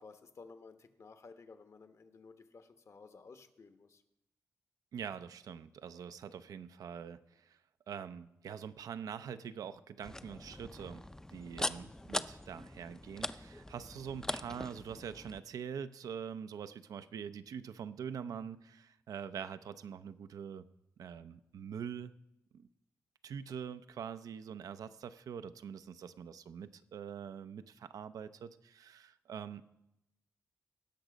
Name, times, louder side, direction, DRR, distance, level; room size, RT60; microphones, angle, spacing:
voice 1, 0.0-4.0, left 4 dB, 55° left, 9 dB, 1.0 m, -55 dB
voice 2, 4.9-7.6 7.9-11.0 11.3-20.6 21.0-22.1 22.5-22.7 23.2-29.7, right 7 dB, 85° right, 12 dB, 0.5 m, -44 dB
sound 1, 10.0-15.4, left 1 dB, 10° left, 0.4 m, -41 dB
17.0 x 6.2 x 5.0 m, 0.89 s
cardioid pair, 70°, 6 cm